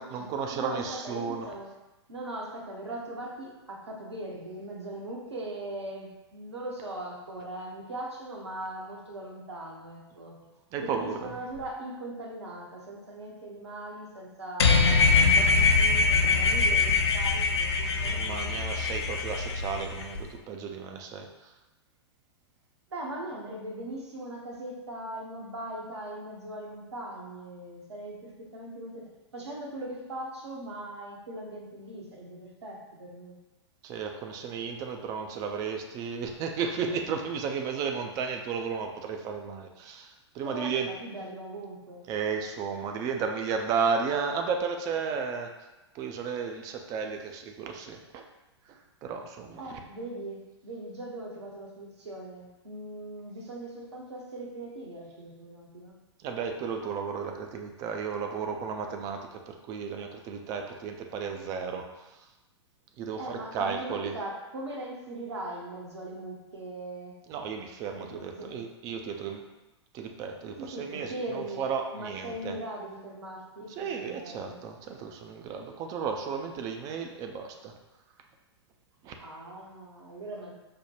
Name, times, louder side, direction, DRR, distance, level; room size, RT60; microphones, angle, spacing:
voice 1, 0.0-1.5 10.7-11.3 18.0-21.3 33.8-40.9 42.1-45.5 45.9-48.2 49.0-49.8 56.2-62.2 63.0-64.1 67.3-69.4 69.9-72.6 73.7-77.7 79.0-79.2, right 6 dB, 25° right, 4 dB, 0.3 m, -33 dB
voice 2, 0.5-1.7 2.1-10.4 10.8-18.6 22.9-33.4 40.4-42.1 49.6-55.9 63.2-67.1 68.0-68.6 70.6-74.6 79.2-80.5, right 1 dB, 70° right, -2 dB, 0.9 m, -40 dB
sound 1, 14.6-20.2, left 4 dB, 65° left, 0.4 m, -23 dB
5.0 x 2.1 x 2.9 m, 1.0 s
figure-of-eight pair, 100°, 15 cm